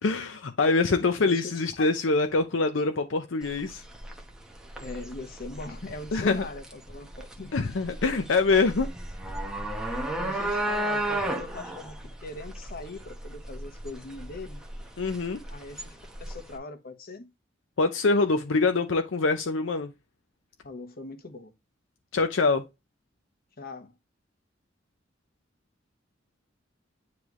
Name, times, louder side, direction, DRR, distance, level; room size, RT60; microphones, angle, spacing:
voice 1, 0.0-3.8 6.1-6.5 7.5-8.9 15.0-15.4 17.8-19.9 22.1-22.6, left 3 dB, 80° left, 0.6 m, -24 dB
voice 2, 0.9-1.6 4.8-7.6 10.2-14.6 15.5-17.3 20.6-21.5 23.6-23.9, left 2 dB, 50° left, 1.2 m, -41 dB
sound 1, 3.4-16.6, right 1 dB, 5° right, 1.0 m, -34 dB
9.4 x 3.3 x 3.1 m
head